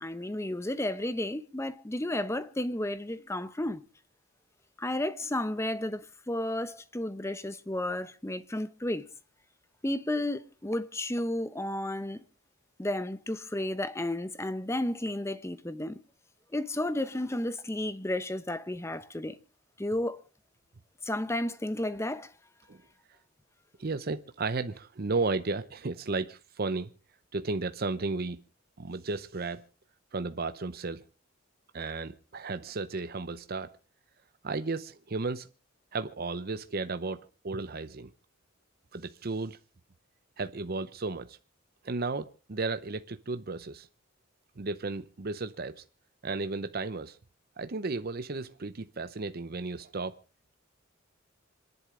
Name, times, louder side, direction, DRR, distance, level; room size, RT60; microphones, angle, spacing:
voice 1, 0.0-3.8 4.8-9.0 9.8-12.2 12.8-16.0 16.5-19.4 19.8-20.2 21.0-22.3, left 1 dB, 15° left, 0.8 m, -32 dB
voice 2, 23.8-26.9 27.3-28.4 28.8-29.6 30.1-31.0 31.7-33.7 34.4-35.5 35.9-38.1 38.9-39.6 40.4-41.4 41.8-43.9 44.6-45.8 46.2-47.2 47.6-50.2, right 3 dB, 45° right, 0.7 m, -34 dB
27.0 x 11.0 x 3.8 m
head